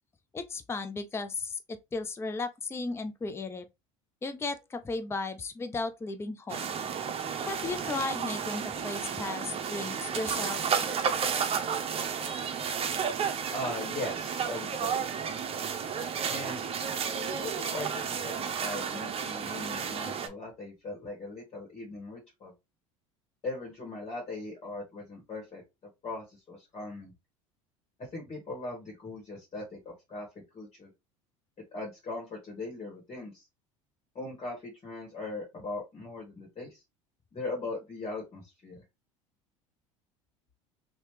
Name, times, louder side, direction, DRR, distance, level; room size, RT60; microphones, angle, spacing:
voice 1, 0.3-3.7 4.2-6.8 7.5-10.6, left 3 dB, 15° left, 0.5 m, -35 dB
sound 1, 6.5-20.3, right 7 dB, 35° right, 0.8 m, -32 dB
voice 2, 13.5-15.0 16.3-16.6 17.3-22.5 23.4-25.6 26.0-27.1 28.0-30.3 30.5-30.9 31.7-33.4 34.1-36.8 37.3-38.8, left 2 dB, 35° left, 1.8 m, -39 dB
3.1 x 2.8 x 3.1 m
hypercardioid pair, 80°, 17 cm